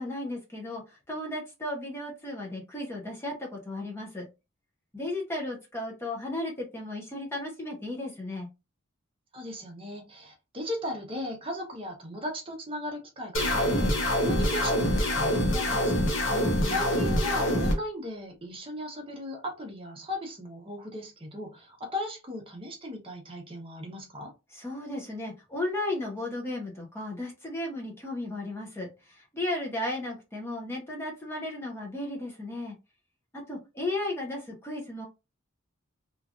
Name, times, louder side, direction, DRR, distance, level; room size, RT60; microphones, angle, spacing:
voice 1, 0.0-4.3 4.9-8.5 16.3-16.8 24.5-32.8 33.3-35.1, left 1 dB, 10° left, -1 dB, 0.6 m, -35 dB
voice 2, 9.3-16.3 16.7-24.3, left 1 dB, 25° right, 1 dB, 0.8 m, -37 dB
sound 1, 13.3-17.7, equal, 65° left, 0.9 m, -25 dB
3.1 x 2.4 x 2.4 m, 0.26 s
head